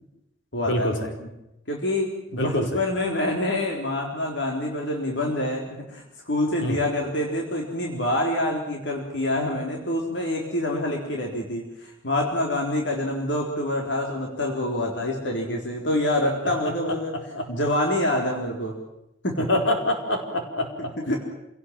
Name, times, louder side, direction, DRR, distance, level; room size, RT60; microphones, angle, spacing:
voice 1, 0.5-1.1 1.7-11.6 12.0-17.1 17.5-18.8 19.2-19.5 21.1-21.2, left 1 dB, 75° left, 0 dB, 3.9 m, -26 dB
voice 2, 2.4-2.7 6.6-6.8 16.8-16.9 17.3-17.5 19.4-20.9, left 1 dB, 90° left, 3 dB, 4.7 m, -25 dB
27.5 x 17.5 x 7.4 m, 0.87 s
head